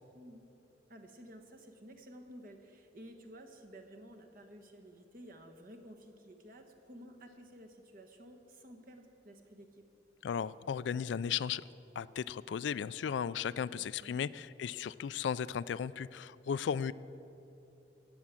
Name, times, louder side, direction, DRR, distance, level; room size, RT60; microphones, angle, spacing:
voice 1, 0.1-0.5 0.9-9.9 13.8-14.2, equal, 50° right, 4 dB, 1.3 m, -53 dB
voice 2, 10.2-11.6 12.0-16.9, left 7 dB, 90° left, 16 dB, 0.3 m, -35 dB
15.5 x 8.3 x 7.6 m, 2.9 s
head